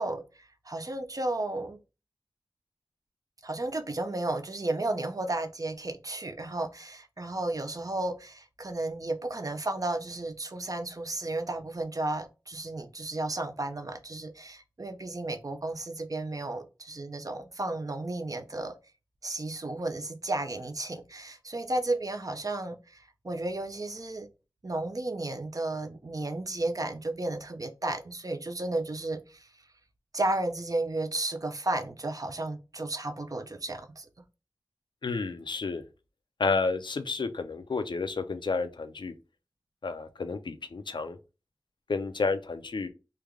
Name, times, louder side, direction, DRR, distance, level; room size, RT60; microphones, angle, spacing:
voice 1, 0.0-1.8 3.4-18.7 19.2-24.3 24.6-29.5 30.1-34.1, right 2 dB, 50° right, 0.6 m, -33 dB
voice 2, 35.0-35.8 36.4-39.1 39.8-41.2 41.9-42.9, left 4 dB, 85° left, 0.5 m, -31 dB
3.3 x 2.3 x 3.5 m
wide cardioid pair, 45°, 8 cm